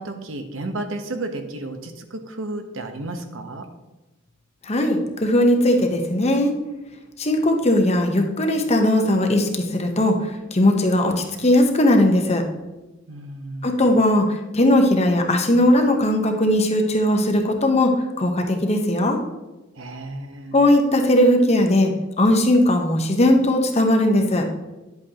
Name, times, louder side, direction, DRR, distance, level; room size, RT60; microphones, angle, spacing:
voice 1, 0.0-3.7 13.1-13.8 19.8-20.5, right 2 dB, 75° right, 6 dB, 1.0 m, -32 dB
voice 2, 4.7-6.5 7.2-12.4 13.6-19.2 20.5-21.9 22.2-24.5, left 1 dB, 30° left, 4 dB, 1.0 m, -18 dB
10.5 x 8.1 x 2.9 m, 1.1 s
head